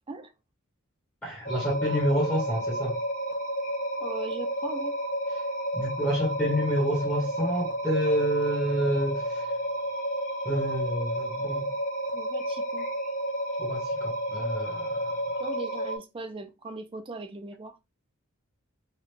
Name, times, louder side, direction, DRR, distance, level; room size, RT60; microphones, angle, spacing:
voice 1, 1.2-3.0 5.7-9.5 10.4-11.8 13.6-15.2, equal, 10° left, 0.9 m, -28 dB
sound 1, 1.5-16.0, equal, 35° left, 0.6 m, -31 dB
voice 2, 4.0-5.0 12.1-12.9 15.4-17.8, right 3 dB, 25° right, 0.4 m, -39 dB
3.2 x 2.4 x 3.2 m
head